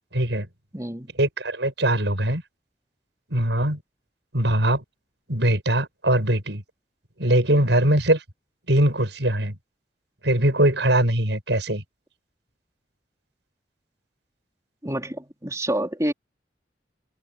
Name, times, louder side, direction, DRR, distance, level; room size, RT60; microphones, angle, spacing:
voice 1, 0.1-0.5 1.2-2.4 3.3-3.8 4.3-4.8 5.3-6.6 7.2-8.2 8.7-9.6 10.2-11.8, right 1 dB, 80° right, 6.0 m, -21 dB
voice 2, 0.7-1.1 14.8-16.1, right 1 dB, 20° right, 3.8 m, -28 dB
head